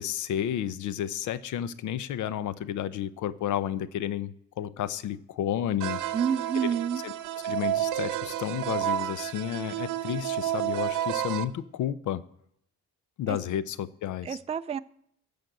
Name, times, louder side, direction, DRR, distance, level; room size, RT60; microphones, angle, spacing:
voice 1, 0.0-6.0 6.6-6.7 7.0-7.1 7.4-12.2 13.2-14.4, left 10 dB, 80° left, 16 dB, 0.7 m, -31 dB
sound 1, 5.8-11.4, right 12 dB, 90° right, 0.8 m, -31 dB
voice 2, 6.1-7.0 13.3-13.4 14.2-14.8, right 7 dB, 20° right, 12 dB, 0.4 m, -28 dB
13.0 x 5.3 x 7.9 m, 0.71 s
cardioid pair, 90°, 30 cm